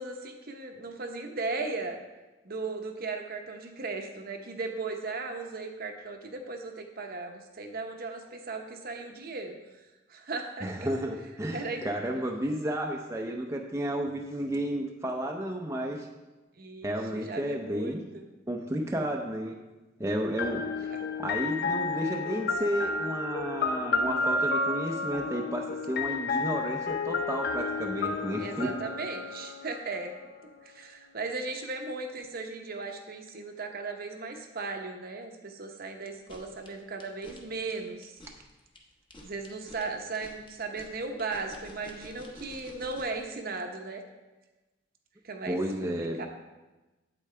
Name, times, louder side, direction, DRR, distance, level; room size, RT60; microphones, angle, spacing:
voice 1, 0.0-2.0 2.4-9.6 10.1-10.7 11.5-11.9 16.6-18.2 20.7-21.2 28.4-30.1 30.6-38.1 39.2-44.0 45.2-45.6 46.0-46.3, right 3 dB, 50° right, 4 dB, 0.9 m, -37 dB
voice 2, 10.6-16.1 16.8-18.0 18.5-19.6 20.0-20.7 21.2-28.8 45.5-46.3, right 1 dB, 15° right, 1 dB, 0.6 m, -32 dB
sound 1, 20.4-30.2, left 3 dB, 55° left, 0.5 m, -31 dB
sound 2, 36.1-43.2, left 1 dB, 25° left, 1.1 m, -51 dB
8.5 x 8.3 x 3.3 m, 1.1 s
head